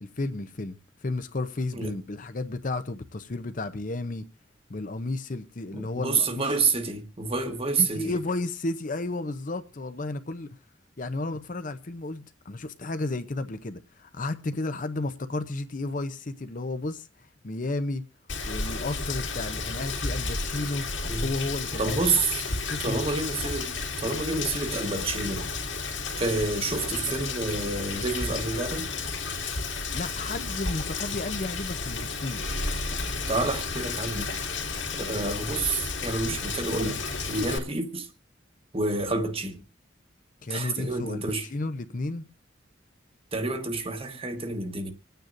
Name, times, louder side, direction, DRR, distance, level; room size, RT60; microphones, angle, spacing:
voice 1, 0.0-4.2 4.7-6.4 7.8-10.5 11.0-17.1 17.4-18.0 18.4-20.8 21.2-22.0 22.5-23.0 29.9-32.6 40.4-42.3, left 2 dB, 45° left, 0.7 m, -33 dB
voice 2, 5.7-8.1 21.0-21.2 21.8-22.4 22.8-25.5 26.2-28.9 33.3-34.3 35.0-37.0 37.3-38.1 38.7-39.6 40.5-41.5 43.3-44.9, right 3 dB, 30° right, 1.3 m, -28 dB
Rain, 18.3-37.6, left 4 dB, 70° left, 2.6 m, -32 dB
26.0 x 9.2 x 2.6 m
head